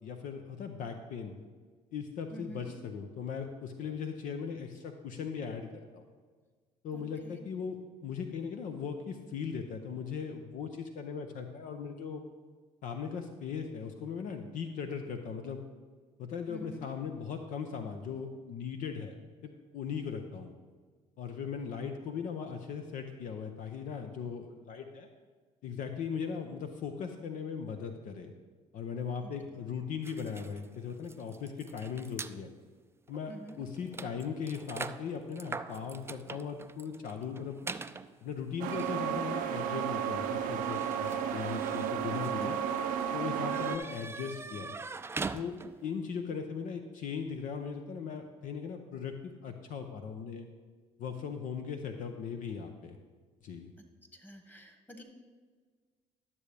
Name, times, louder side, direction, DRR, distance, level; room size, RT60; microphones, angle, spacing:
voice 1, 0.0-1.4 1.9-6.1 6.8-12.2 12.8-15.6 16.2-19.1 19.4-20.5 21.2-25.1 25.6-28.3 28.7-32.5 33.1-37.6 38.2-42.6 43.1-44.7 45.3-50.5 51.0-53.0 53.4-53.7, left 6 dB, 60° left, 6 dB, 0.7 m, -38 dB
voice 2, 2.3-2.7 6.9-7.4 16.5-16.8 29.2-29.3 33.3-33.6 42.3-42.8 54.1-55.0, right 1 dB, 15° left, 4 dB, 1.7 m, -48 dB
sound 1, 30.0-32.4 33.1-33.2 33.5-45.9, right 4 dB, 15° right, 0.4 m, -44 dB
sound 2, 38.6-43.8, right 8 dB, 70° right, 0.6 m, -33 dB
12.0 x 6.9 x 3.4 m, 1.5 s
hypercardioid pair, 60°, 15 cm